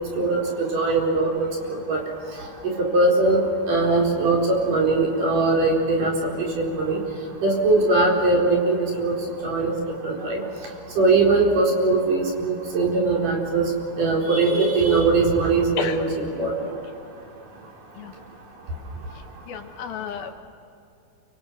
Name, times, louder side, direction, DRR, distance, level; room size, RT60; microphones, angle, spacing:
voice 1, 0.2-2.0 2.8-3.4 3.7-4.4 4.7-6.1 6.4-7.0 7.4-9.1 9.4-9.8 10.0-10.4 11.0-13.7 14.0-16.7, right 3 dB, 60° right, -1 dB, 5.8 m, -21 dB
voice 2, 19.5-20.3, left 8 dB, 75° left, 7 dB, 3.1 m, -31 dB
28.5 x 25.0 x 6.5 m, 2.6 s
omnidirectional pair, 4.4 m